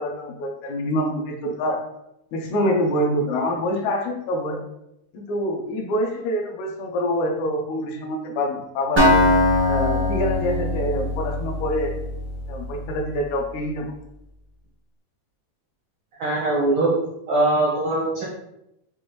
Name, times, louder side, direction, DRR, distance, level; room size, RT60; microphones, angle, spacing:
voice 1, 0.0-1.8 2.3-4.6 5.1-9.2 9.7-11.9 12.5-13.9, equal, 75° left, 2 dB, 1.9 m, -26 dB
Acoustic guitar, 9.0-12.8, left 1 dB, 35° right, 0.4 m, -21 dB
voice 2, 16.2-16.9 17.3-18.2, right 2 dB, 80° right, -5 dB, 1.0 m, -21 dB
6.2 x 2.5 x 3.0 m, 0.86 s
omnidirectional pair, 3.4 m